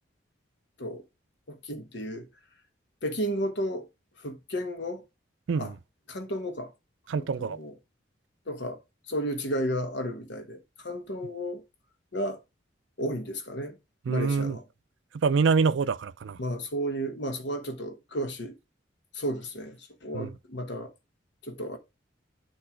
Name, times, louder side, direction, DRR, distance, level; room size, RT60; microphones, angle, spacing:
voice 1, 1.5-2.3 3.0-3.9 4.2-5.0 5.6-5.7 6.1-6.7 7.1-7.8 8.5-8.8 9.1-11.6 12.1-12.4 13.0-13.8 14.1-14.6 16.4-18.5 19.1-20.9 21.4-21.8, equal, 65° left, 1.3 m, -33 dB
voice 2, 7.1-7.6 14.1-14.6 15.2-16.4 20.1-20.3, right 5 dB, 70° right, 0.4 m, -25 dB
8.7 x 3.0 x 4.9 m
head